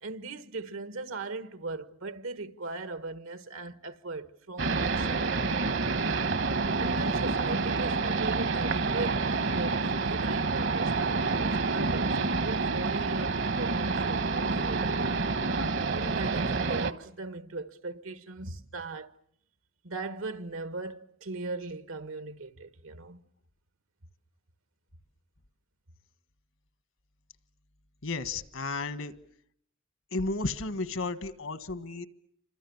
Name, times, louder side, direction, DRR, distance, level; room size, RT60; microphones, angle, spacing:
voice 1, 0.0-5.4 6.8-15.2 15.9-19.1 19.8-23.2, right 3 dB, 90° right, 1.5 m, -39 dB
sound 1, 4.6-16.9, right 3 dB, 60° right, 1.1 m, -28 dB
voice 2, 28.0-29.1 30.1-32.1, left 3 dB, 75° left, 1.5 m, -33 dB
28.5 x 25.5 x 7.1 m
head